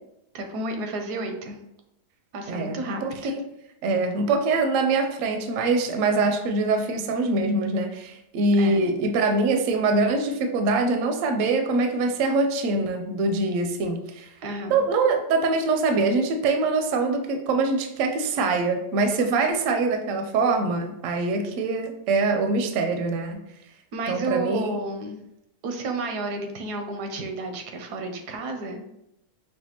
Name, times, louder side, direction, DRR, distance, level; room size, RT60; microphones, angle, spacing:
voice 1, 0.3-1.6 2.3-3.3 8.6-8.9 14.4-14.8 23.9-25.2 25.6-28.9, right 2 dB, 85° right, 5 dB, 1.2 m, -31 dB
voice 2, 2.5-3.4 3.8-14.3 14.7-23.4 24.1-24.8, right 3 dB, 65° right, 5 dB, 0.8 m, -24 dB
5.6 x 2.3 x 2.9 m, 0.81 s
omnidirectional pair, 1.7 m